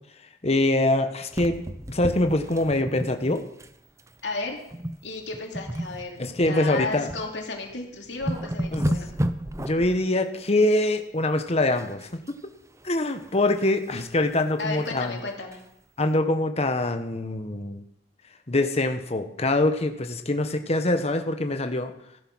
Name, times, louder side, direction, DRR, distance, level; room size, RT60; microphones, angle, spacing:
voice 1, 0.4-1.6 1.9-3.4 6.2-7.1 8.7-8.9 9.6-12.1 12.8-15.2 16.0-17.8 18.5-21.9, left 2 dB, 35° left, 7 dB, 1.2 m, -24 dB
sound 1, 1.3-3.7 4.0-4.2 4.7-5.0 5.3-7.2 7.7-7.8 8.1-10.0 11.8-12.3 12.7-14.1 14.6-14.7 15.0-15.1 15.5-15.6, equal, 15° right, 0.7 m, -32 dB
voice 2, 4.2-4.6 5.0-9.1 14.6-15.6, left 3 dB, 70° left, 1 dB, 3.0 m, -33 dB
15.5 x 11.5 x 6.2 m, 0.79 s
head